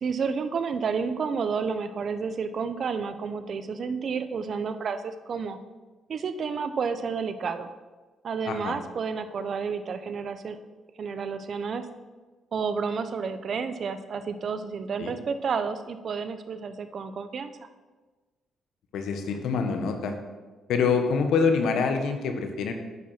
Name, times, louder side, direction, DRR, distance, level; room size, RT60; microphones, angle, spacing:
voice 1, 0.0-5.6 6.1-7.7 8.2-10.6 11.0-11.8 12.5-17.5, right 5 dB, 55° right, 10 dB, 0.7 m, -30 dB
voice 2, 18.9-20.2 20.7-22.7, left 5 dB, 75° left, 5 dB, 1.2 m, -25 dB
9.7 x 4.8 x 5.8 m, 1.3 s
cardioid pair, 90°, 0 cm